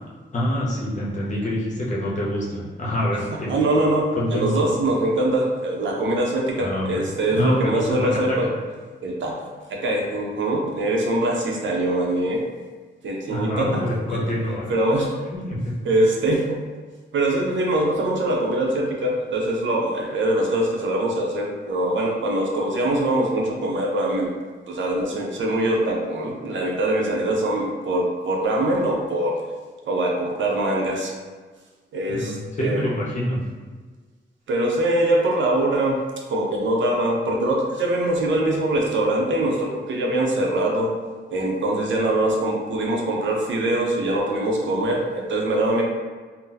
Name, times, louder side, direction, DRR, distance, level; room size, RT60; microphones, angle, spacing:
voice 1, 0.3-3.6 4.1-4.6 6.6-7.0 7.3-8.5 13.3-14.7 15.5-15.7 32.1-33.4, equal, 40° left, -5 dB, 0.7 m, -26 dB
voice 2, 3.3-8.5 9.0-9.4 9.7-12.4 13.0-13.8 14.1-14.2 14.7-15.2 15.8-16.6 17.1-24.3 24.7-29.4 29.9-31.1 31.9-32.9 34.5-36.0 36.3-40.9 41.3-45.8, right 1 dB, 85° right, 0 dB, 0.6 m, -23 dB
2.7 x 2.0 x 3.8 m, 1.5 s
wide cardioid pair, 175°, 19 cm